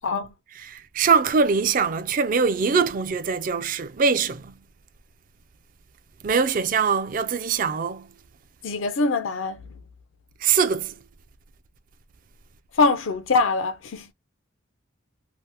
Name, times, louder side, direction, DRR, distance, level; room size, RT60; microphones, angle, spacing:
voice 1, 0.5-4.5 6.2-8.1 10.4-10.9, right 5 dB, 45° right, 0.4 m, -22 dB
voice 2, 8.6-9.6 12.8-14.1, left 4 dB, 80° left, 0.5 m, -23 dB
2.7 x 2.1 x 3.3 m
head